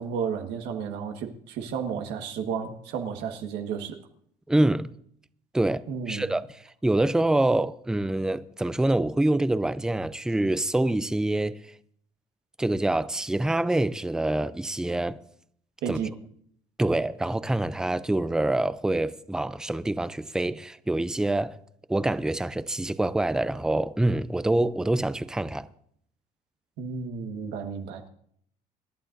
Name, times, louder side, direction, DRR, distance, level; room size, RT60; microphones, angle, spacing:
voice 1, 0.0-4.0 5.9-6.3 15.8-16.1 26.8-28.1, right 6 dB, 85° right, 1.5 m, -32 dB
voice 2, 4.5-4.9 5.5-11.6 12.6-15.2 15.9-16.0 16.8-21.6 21.9-25.7, right 1 dB, 5° right, 0.4 m, -26 dB
26.0 x 11.5 x 2.6 m
cardioid pair, 110°, 17 cm